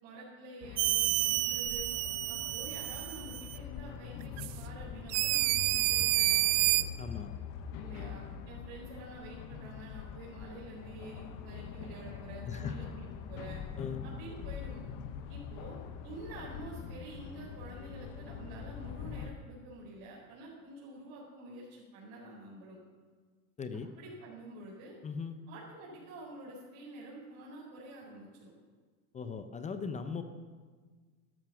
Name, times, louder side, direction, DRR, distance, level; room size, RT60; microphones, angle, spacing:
voice 1, 0.0-1.9 2.3-6.8 7.8-13.6 14.0-14.8 15.3-15.8 16.0-22.8 24.0-24.9 25.5-28.5, right 2 dB, 55° right, -6 dB, 4.8 m, -48 dB
sound 1, 0.6-19.3, left 7 dB, 45° left, 1.2 m, -43 dB
sound 2, 0.8-3.6 4.4-4.5 5.1-6.8, right 18 dB, 35° right, 0.5 m, -29 dB
voice 2, 7.0-7.3 12.4-12.7 13.8-14.0 23.6-23.9 25.0-25.4 29.1-30.2, left 5 dB, 15° left, 9 dB, 0.7 m, -39 dB
13.0 x 12.5 x 6.2 m, 1.5 s
hypercardioid pair, 120°, 44 cm